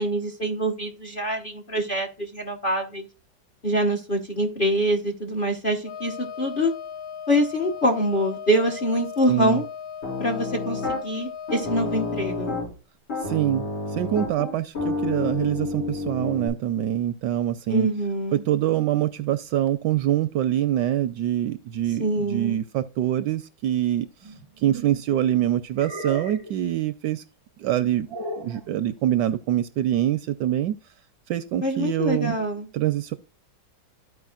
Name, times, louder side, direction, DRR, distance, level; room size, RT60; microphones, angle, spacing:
voice 1, 0.0-3.1 3.6-6.7 7.3-9.6 10.2-12.6 17.7-18.4 22.0-22.6 31.6-32.7, equal, 40° left, 0.9 m, -25 dB
Wind instrument woodwind instrument, 5.8-12.6, left 8 dB, 60° left, 1.0 m, -37 dB
voice 2, 9.3-9.6 13.2-13.7 13.9-17.9 18.3-24.1 24.6-27.2 27.6-28.1 28.4-30.7 31.3-32.4 32.7-33.1, right 12 dB, 75° right, 1.1 m, -24 dB
Piano, 10.0-11.0 11.5-12.7 13.1-16.5, left 3 dB, 80° left, 5.0 m, -30 dB
sound 1, 24.2-25.0 25.7-26.6 28.1-28.6, right 1 dB, 25° right, 0.5 m, -36 dB
13.5 x 4.8 x 2.4 m
omnidirectional pair, 2.1 m